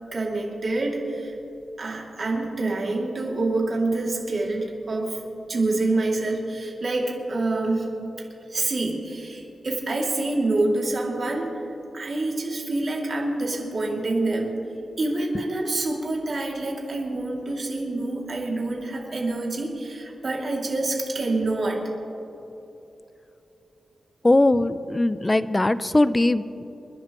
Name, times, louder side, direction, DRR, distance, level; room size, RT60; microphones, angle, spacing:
voice 1, 0.1-1.3 1.8-5.2 5.5-7.9 8.5-11.5 11.9-14.5 15.0-21.8, right 2 dB, 45° right, -2 dB, 2.5 m, -26 dB
voice 2, 24.2-26.6, left 2 dB, 20° left, 14 dB, 0.4 m, -20 dB
28.0 x 11.0 x 3.0 m, 3.0 s
wide cardioid pair, 130°, 0 cm